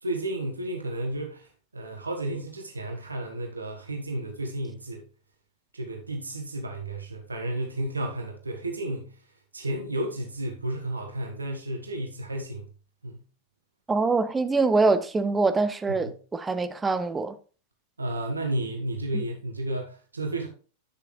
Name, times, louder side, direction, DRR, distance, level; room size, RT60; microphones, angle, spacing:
voice 1, 0.0-1.5 1.7-5.0 5.7-9.2 9.5-12.6 13.0-13.2 15.9-16.2 18.0-20.5, right 1 dB, 80° right, 1.2 m, -32 dB
voice 2, 13.9-17.4 19.1-19.2, right 3 dB, 15° right, 0.7 m, -24 dB
9.6 x 6.8 x 3.1 m
figure-of-eight pair, 90°, 0 cm